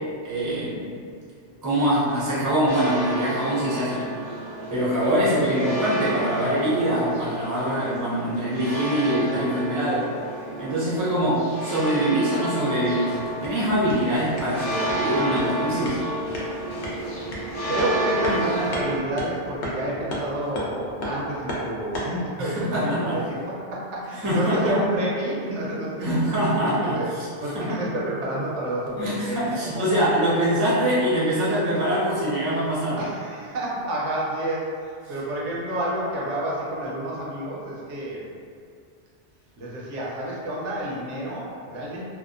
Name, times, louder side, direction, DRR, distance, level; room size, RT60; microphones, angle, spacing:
voice 1, 0.2-0.9 1.6-4.1 4.7-10.1 10.6-13.2 13.4-16.0 22.4-23.2 24.2-24.8 26.0-27.3 27.5-27.7 29.0-33.0, equal, 25° right, -8 dB, 0.5 m, -24 dB
sound 1, 2.7-19.0, right 1 dB, 55° left, 0.4 m, -31 dB
sound 2, 13.2-22.3, equal, 70° left, 0.8 m, -36 dB
voice 2, 17.7-27.1 27.4-30.1 33.0-38.3 39.6-42.0, right 1 dB, 80° right, -5 dB, 0.9 m, -29 dB
2.7 x 2.1 x 2.4 m, 2.3 s
omnidirectional pair, 1.2 m